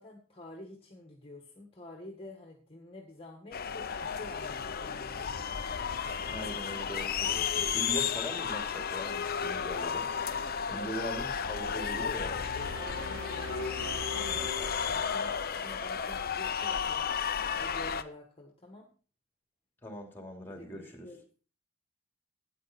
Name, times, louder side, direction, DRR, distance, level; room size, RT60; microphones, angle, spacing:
voice 1, 0.0-5.4 10.7-10.9 12.7-17.1 17.6-18.9 20.5-21.2, left 2 dB, 25° left, 2 dB, 1.7 m, -48 dB
sound 1, 3.5-18.0, left 7 dB, 45° left, 0.7 m, -33 dB
voice 2, 6.2-10.1 10.7-12.4 19.8-21.1, equal, 10° left, 4 dB, 2.6 m, -41 dB
sound 2, 12.4-15.6, left 1 dB, 70° right, 2.8 m, -41 dB
13.5 x 9.4 x 4.3 m, 0.39 s
head